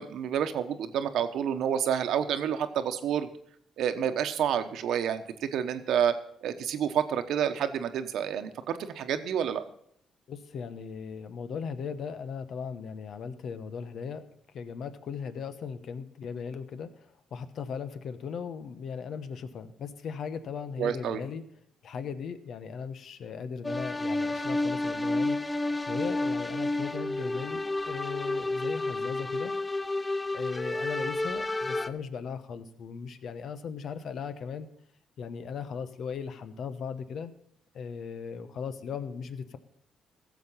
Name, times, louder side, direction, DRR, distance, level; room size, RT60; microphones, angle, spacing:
voice 1, 0.0-3.3 3.8-6.1 6.4-9.6 20.8-21.2, right 8 dB, 75° right, 8 dB, 1.1 m, -29 dB
voice 2, 10.3-14.2 14.5-21.4 21.8-29.5 30.3-34.7 35.2-37.3 37.7-39.6, left 6 dB, 65° left, 11 dB, 1.0 m, -38 dB
sound 1, 23.6-31.9, left 2 dB, 15° left, 0.6 m, -30 dB
15.5 x 7.2 x 5.6 m, 0.67 s
cardioid pair, 90°, 0 cm